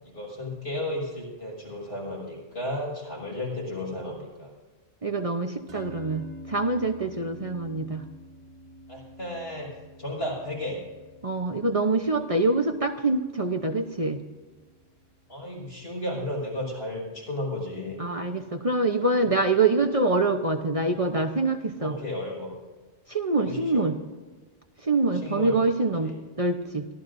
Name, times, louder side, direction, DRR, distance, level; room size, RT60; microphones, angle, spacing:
voice 1, 0.0-4.5 8.9-9.7 10.0-10.8 15.3-18.0 21.8-22.5 23.4-23.8 25.2-25.6 26.0-26.2, left 1 dB, 70° left, -3 dB, 6.4 m, -33 dB
voice 2, 5.0-8.0 11.2-14.2 18.0-21.9 23.1-24.0 24.8-26.9, right 3 dB, 35° right, 5 dB, 0.9 m, -25 dB
sound 1, 5.7-16.1, right 1 dB, 65° right, 1.9 m, -49 dB
23.5 x 15.0 x 2.7 m, 1.3 s
omnidirectional pair, 1.1 m